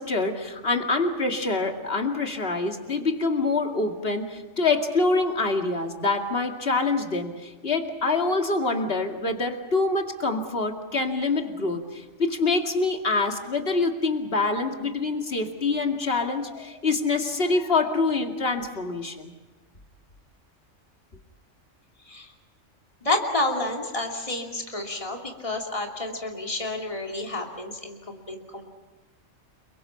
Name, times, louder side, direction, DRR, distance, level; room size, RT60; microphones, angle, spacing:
voice 1, 0.0-19.3, left 3 dB, 50° left, 4 dB, 2.5 m, -25 dB
voice 2, 23.0-28.6, left 2 dB, 25° left, 1 dB, 2.9 m, -30 dB
30.0 x 23.0 x 5.8 m, 1.2 s
omnidirectional pair, 1.3 m